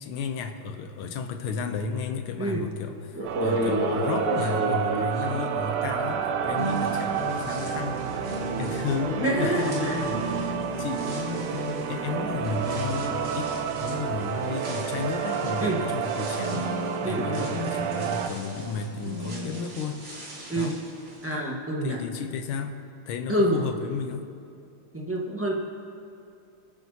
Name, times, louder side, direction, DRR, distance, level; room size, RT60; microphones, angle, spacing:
voice 1, 0.0-8.0 8.6-16.7 17.0-20.0 20.6-20.8 21.8-22.8 23.1-24.3, left 5 dB, 85° left, 7 dB, 1.6 m, -33 dB
voice 2, 2.4-2.7 9.2-10.0 15.6-15.9 17.0-17.6 20.5-20.8 21.2-22.0 23.3-23.7 24.9-25.6, right 1 dB, 10° right, -3 dB, 0.9 m, -27 dB
sound 1, 2.6-2.7 3.1-6.3 6.6-21.3, right 1 dB, 50° right, 2.8 m, -36 dB
sound 2, 3.2-18.3, right 7 dB, 90° right, 1.6 m, -30 dB
sound 3, 6.4-19.6, right 2 dB, 30° right, 1.8 m, -38 dB
26.0 x 9.1 x 2.8 m, 2.5 s
omnidirectional pair, 2.3 m